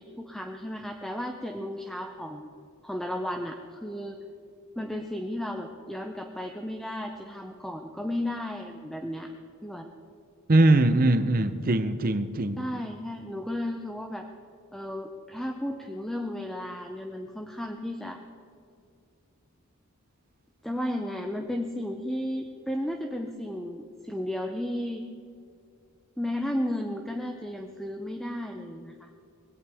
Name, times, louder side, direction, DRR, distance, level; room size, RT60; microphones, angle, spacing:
voice 1, 0.0-2.5 2.8-4.2 4.8-9.3 9.6-9.9 12.6-14.3 14.7-18.2 20.6-25.0 26.2-29.1, left 1 dB, ahead, 4 dB, 0.6 m, -34 dB
voice 2, 10.5-12.6, right 2 dB, 40° right, 11 dB, 0.8 m, -21 dB
20.0 x 16.5 x 3.6 m, 2.3 s
head